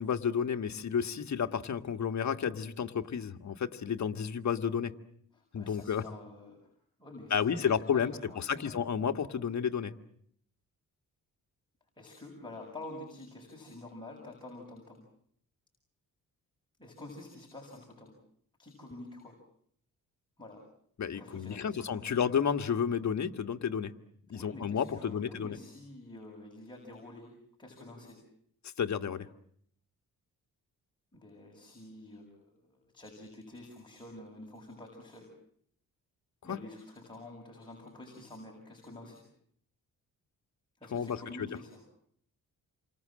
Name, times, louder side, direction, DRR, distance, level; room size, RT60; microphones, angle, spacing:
voice 1, 0.0-4.9 5.5-6.0 7.3-9.9 21.0-23.9 24.3-25.6 28.8-29.3 36.5-36.6 40.9-41.1 41.4-41.5, left 7 dB, 55° left, 6 dB, 1.7 m, -31 dB
voice 2, 5.3-6.6 7.0-8.9 12.0-15.0 16.8-18.1 18.6-19.4 20.4-20.6 21.1-22.2 24.3-27.3 27.6-28.2 31.1-35.3 36.4-39.2 40.8-41.9, left 2 dB, 15° left, 0 dB, 7.5 m, -48 dB
29.0 x 25.5 x 7.6 m, 0.66 s
cardioid pair, 110°, 34 cm